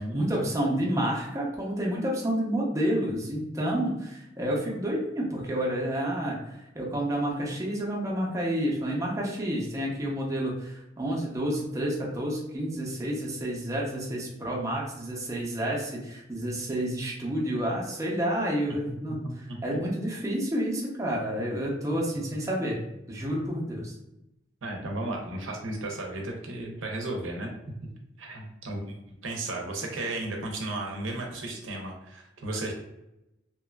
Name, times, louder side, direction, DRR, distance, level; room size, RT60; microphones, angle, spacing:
voice 1, 0.0-22.8 23.1-23.9, right 1 dB, 15° right, -3 dB, 0.5 m, -29 dB
voice 2, 19.1-19.6 24.6-27.5 28.2-28.8 29.2-32.7, right 2 dB, 90° right, 1 dB, 0.6 m, -34 dB
2.8 x 2.3 x 2.2 m, 0.89 s
head